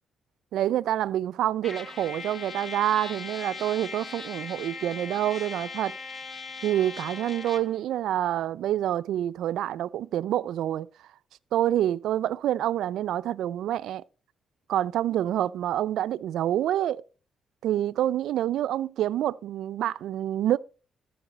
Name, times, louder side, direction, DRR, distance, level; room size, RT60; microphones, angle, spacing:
voice 1, 0.5-5.9 6.6-10.9 11.5-14.0 14.7-17.0 17.6-20.6, right 12 dB, 80° right, 0.4 m, -27 dB
Trumpet, 1.6-7.8, left 4 dB, 35° left, 1.1 m, -39 dB
13.5 x 4.7 x 6.2 m
cardioid pair, 90°, 0 cm